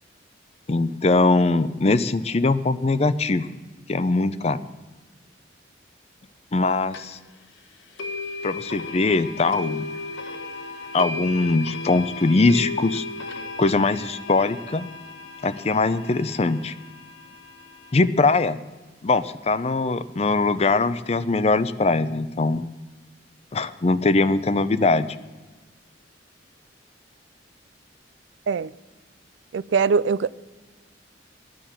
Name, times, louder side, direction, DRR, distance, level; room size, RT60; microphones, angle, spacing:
voice 1, 0.7-3.5 3.9-4.6 6.5-7.2 8.4-9.9 10.9-13.0 13.6-14.9 15.4-16.7 17.9-18.6 19.0-22.7 23.5-25.1, left 3 dB, 35° left, 0.5 m, -21 dB
sound 1, 6.9-7.0 8.0-18.1, left 3 dB, 85° left, 1.5 m, -35 dB
voice 2, 29.5-30.3, right 5 dB, 70° right, 0.4 m, -21 dB
14.0 x 10.0 x 7.3 m
head